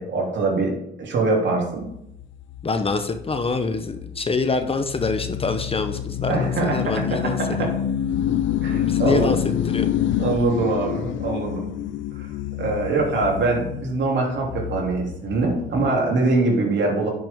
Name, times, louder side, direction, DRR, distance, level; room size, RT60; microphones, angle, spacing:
voice 1, 0.0-1.9 6.3-7.7 8.6-9.3 10.2-11.7 12.1-12.3 12.6-17.1, right 3 dB, 65° right, -1 dB, 2.9 m, -23 dB
sound 1, 1.8-16.0, left 10 dB, 70° left, 0.5 m, -28 dB
voice 2, 2.6-7.7 8.9-9.4 9.6-10.0, left 4 dB, 30° left, 8 dB, 0.8 m, -25 dB
10.5 x 6.0 x 3.6 m, 0.80 s
cardioid pair, 90°, 20 cm